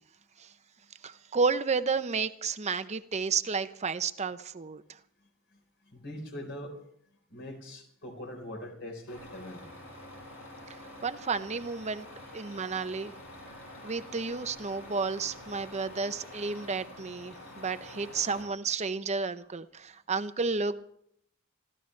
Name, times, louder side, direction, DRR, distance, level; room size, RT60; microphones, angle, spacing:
voice 1, 1.0-4.8 11.0-12.1 12.3-13.1 13.8-20.8, right 4 dB, 35° right, 0.7 m, -31 dB
voice 2, 5.9-6.8 7.3-9.6, left 1 dB, 60° left, 4.2 m, -42 dB
Truck, 9.1-18.4, left 1 dB, 85° left, 7.9 m, -47 dB
26.0 x 14.5 x 3.3 m
head